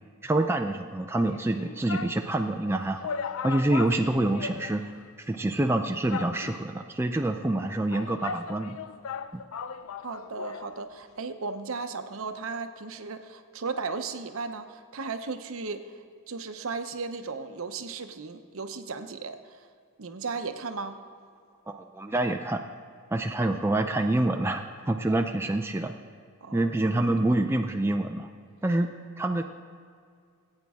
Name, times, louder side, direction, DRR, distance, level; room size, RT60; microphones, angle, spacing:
voice 1, 0.2-3.0 3.4-4.8 5.3-8.8 9.3-9.4 21.7-22.6 23.1-25.9 26.5-28.3 28.6-28.9 29.2-29.4, right 2 dB, 10° right, 5 dB, 0.3 m, -26 dB
sound 1, 1.3-2.2 2.7-2.8 3.0-5.1 5.3-5.4 6.1-6.8 7.6-10.7 11.0-11.1, left 6 dB, 70° left, 0.4 m, -37 dB
voice 2, 10.0-15.8 16.3-19.6 20.0-21.0 26.4-26.7, right 4 dB, 70° right, 8 dB, 0.7 m, -35 dB
18.0 x 8.9 x 3.6 m, 2.2 s
head